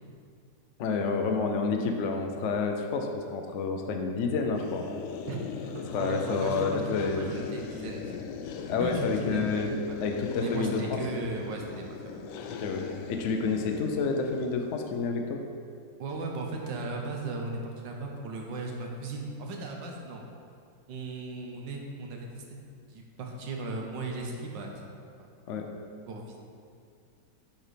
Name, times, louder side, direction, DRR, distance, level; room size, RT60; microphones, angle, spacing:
voice 1, 0.8-4.9 5.9-7.3 8.7-9.7 10.0-11.0 12.5-12.8 13.1-15.4 25.5-25.7, left 4 dB, 60° left, 3 dB, 0.8 m, -29 dB
sound 1, 4.6-15.0, left 6 dB, 80° left, 1.2 m, -39 dB
voice 2, 5.3-8.1 8.8-9.5 9.9-10.0 10.4-12.3 16.0-20.2 20.9-22.6 22.9-24.7 25.2-25.3 26.1-26.4, right 2 dB, 85° right, 1 dB, 1.7 m, -36 dB
8.6 x 4.4 x 5.0 m, 2.3 s
omnidirectional pair, 1.9 m